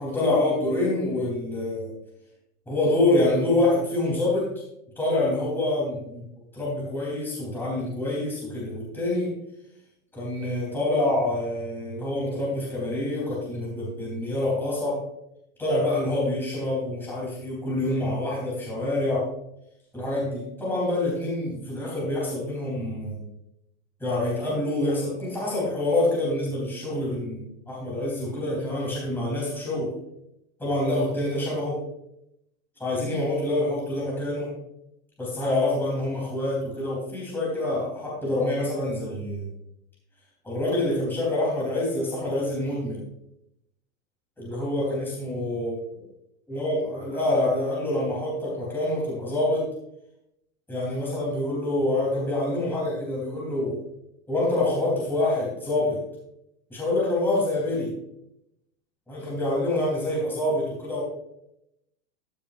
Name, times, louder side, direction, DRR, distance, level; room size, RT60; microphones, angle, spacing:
voice 1, 0.0-1.9 2.7-4.5 5.0-6.2 6.5-9.3 10.1-15.0 15.6-19.3 19.9-23.3 24.0-29.9 30.6-31.8 32.8-34.5 35.2-39.5 40.4-43.0 44.4-45.8 46.5-49.7 50.7-53.8 54.3-56.0 56.7-57.9 59.1-61.0, left 1 dB, 5° left, -6 dB, 3.7 m, -26 dB
14.5 x 6.9 x 2.6 m, 0.81 s
supercardioid pair, 145°, 42 cm